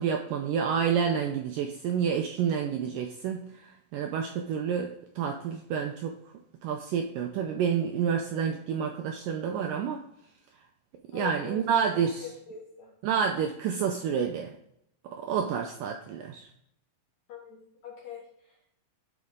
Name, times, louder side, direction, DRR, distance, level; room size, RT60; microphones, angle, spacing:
voice 1, 0.0-6.2 6.6-10.0 11.1-12.3 13.0-14.6 15.0-16.5, right 7 dB, 90° right, 4 dB, 1.9 m, -29 dB
voice 2, 11.1-11.6 11.9-12.9 15.3-15.4 17.3-18.7, left 7 dB, 50° left, -3 dB, 2.6 m, -43 dB
11.5 x 4.8 x 3.7 m, 0.74 s
omnidirectional pair, 4.5 m